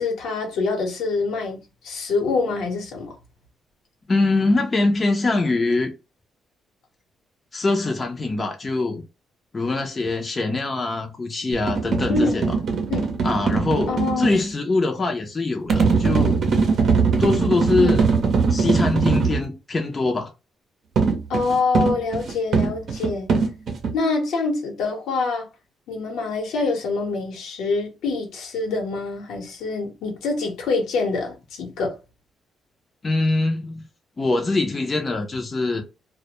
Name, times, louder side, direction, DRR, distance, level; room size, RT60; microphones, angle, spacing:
voice 1, 0.0-3.1 12.1-12.5 12.9-13.2 13.9-14.4 17.8-17.9 21.3-23.3 23.9-25.5 25.9-32.0, left 3 dB, 85° left, 0.9 m, -25 dB
voice 2, 4.1-5.9 7.5-9.0 9.5-12.5 13.2-16.4 17.2-18.1 18.5-20.3 33.0-33.8 34.2-35.8, left 2 dB, 30° left, 0.5 m, -23 dB
sound 1, 11.5-14.4 15.7-19.4 21.0-23.9, right 5 dB, 60° right, 0.6 m, -21 dB
2.2 x 2.0 x 2.8 m
cardioid pair, 90°, 0 cm